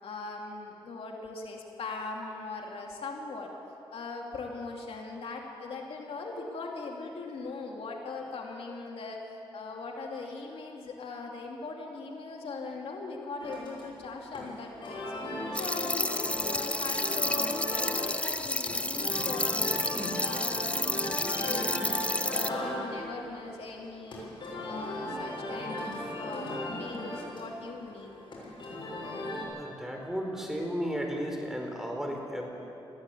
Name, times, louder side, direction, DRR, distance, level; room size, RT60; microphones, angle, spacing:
voice 1, 0.0-3.5 3.9-15.1 15.5-16.2 16.4-19.9 20.2-24.3 24.7-28.2, left 3 dB, 75° left, 0 dB, 2.6 m, -40 dB
sound 1, 13.4-29.4, left 1 dB, 55° left, 6.8 m, -37 dB
sound 2, 15.5-22.5, left 1 dB, 10° left, 0.8 m, -31 dB
voice 2, 29.5-32.5, equal, 5° right, 1 dB, 4.4 m, -34 dB
21.0 x 14.5 x 8.4 m, 2.8 s
cardioid pair, 80°, 10 cm